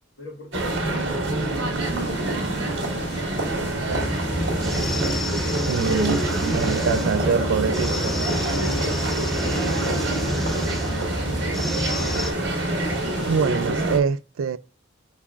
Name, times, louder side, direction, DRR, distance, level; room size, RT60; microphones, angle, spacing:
voice 1, 0.2-3.8 8.6-10.5, equal, 80° left, 1.8 m, -39 dB
sound 1, 0.5-14.0, right 2 dB, 65° right, 1.7 m, -26 dB
sound 2, 1.8-13.5, left 2 dB, 60° left, 1.5 m, -42 dB
sound 3, 3.9-12.3, equal, ahead, 0.4 m, -29 dB
voice 2, 5.7-8.1 13.2-14.6, right 6 dB, 90° right, 0.4 m, -25 dB
5.7 x 3.5 x 2.4 m
head